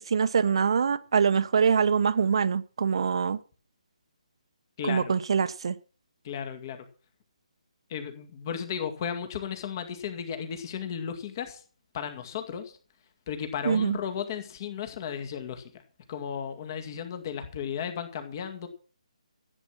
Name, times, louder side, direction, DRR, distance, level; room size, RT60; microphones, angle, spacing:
voice 1, 0.0-3.4 4.8-5.8 13.6-14.0, right 6 dB, 45° right, 0.9 m, -24 dB
voice 2, 4.8-5.1 6.2-6.9 7.9-11.6 11.9-12.8 13.3-15.7 16.1-18.7, left 8 dB, 30° left, 2.1 m, -35 dB
15.0 x 8.8 x 6.1 m
figure-of-eight pair, 145°, 4 cm